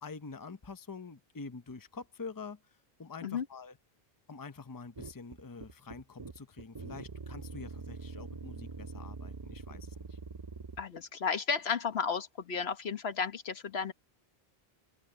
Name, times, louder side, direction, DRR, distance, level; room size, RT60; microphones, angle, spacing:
voice 1, 0.0-2.6 3.0-3.8 4.3-10.2, left 4 dB, 20° left, 0.8 m, -46 dB
sound 1, 5.0-10.9, right 4 dB, 30° right, 0.5 m, -44 dB
voice 2, 10.8-13.9, left 6 dB, 85° left, 1.5 m, -33 dB
open air
omnidirectional pair, 1.0 m